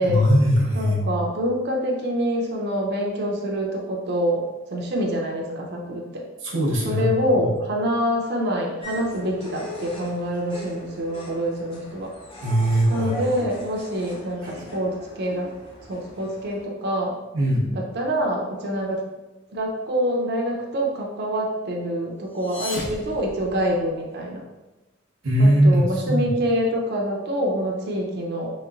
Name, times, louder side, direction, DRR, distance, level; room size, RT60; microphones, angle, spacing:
voice 1, 0.0-1.1 6.4-7.5 12.4-13.1 17.3-17.7 25.2-26.3, equal, 80° right, -4 dB, 0.8 m, -20 dB
voice 2, 0.7-4.4 4.7-6.2 6.8-12.1 12.9-15.5 15.9-17.1 17.7-19.1 19.5-24.4 25.4-28.5, equal, 55° right, 0 dB, 0.5 m, -26 dB
sound 1, 8.8-16.7, equal, 25° left, 0.5 m, -40 dB
sound 2, 22.2-24.1, left 2 dB, 60° left, 0.7 m, -35 dB
3.1 x 3.0 x 2.4 m, 1.1 s
head